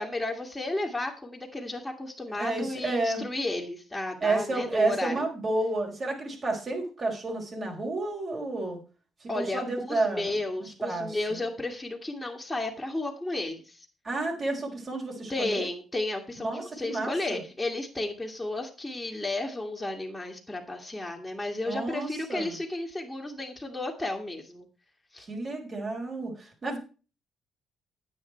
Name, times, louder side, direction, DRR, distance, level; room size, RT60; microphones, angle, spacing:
voice 1, 0.0-5.3 9.3-13.9 15.3-24.7 25.1-25.3, left 2 dB, 10° left, -4 dB, 2.1 m, -33 dB
voice 2, 2.4-3.2 4.2-8.8 9.2-10.3 10.6-11.4 14.0-15.7 16.4-17.4 21.7-22.6 25.3-26.8, right 2 dB, 40° right, 1 dB, 4.5 m, -31 dB
9.5 x 9.2 x 4.5 m, 0.35 s
cardioid pair, 90°, 0 cm